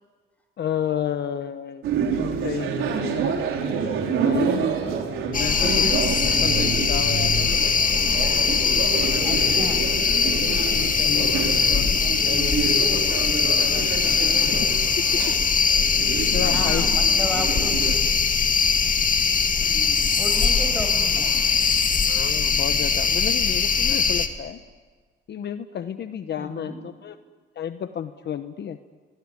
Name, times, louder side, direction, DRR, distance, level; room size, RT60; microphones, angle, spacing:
voice 1, 0.6-1.8 2.4-3.4 4.1-4.7 5.3-7.6 10.7-14.7 15.1-15.2 16.3-16.9 22.1-24.6 25.3-27.2 27.6-28.8, left 9 dB, 60° left, 10 dB, 1.1 m, -32 dB
sound 1, 1.8-18.0, right 6 dB, 85° right, 4.3 m, -28 dB
sound 2, 5.3-24.3, left 5 dB, 40° left, 2.2 m, -21 dB
voice 2, 9.2-9.9 16.4-17.9 19.6-21.3 26.4-26.8, equal, 10° left, 5 dB, 6.9 m, -34 dB
23.5 x 22.5 x 9.8 m, 1.5 s
cardioid pair, 90°, 20 cm